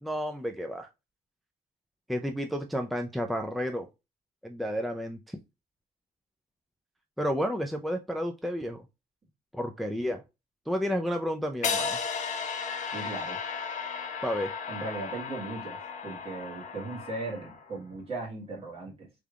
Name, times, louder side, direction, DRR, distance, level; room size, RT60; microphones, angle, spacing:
voice 1, 0.0-0.9 2.1-3.9 4.4-5.4 7.2-8.8 9.5-10.2 10.7-12.0 14.2-14.5, equal, ahead, 0.4 m, -31 dB
sound 1, 11.6-17.8, left 5 dB, 45° left, 1.1 m, -35 dB
voice 2, 12.9-13.4 14.7-15.8 16.0-19.1, right 3 dB, 35° right, 1.7 m, -37 dB
3.4 x 3.3 x 2.4 m
cardioid pair, 110°, 17 cm